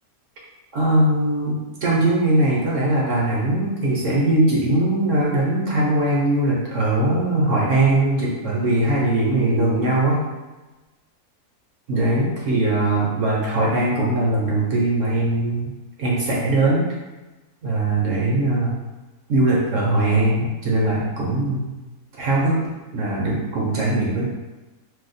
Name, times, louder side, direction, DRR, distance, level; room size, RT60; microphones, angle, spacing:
voice 1, 0.7-10.2 11.9-15.7 16.0-16.9 17.6-18.8 19.3-21.7 22.2-22.6 22.9-24.3, right 2 dB, 60° right, -5 dB, 1.0 m, -20 dB
2.7 x 2.1 x 4.0 m, 1.1 s
omnidirectional pair, 1.6 m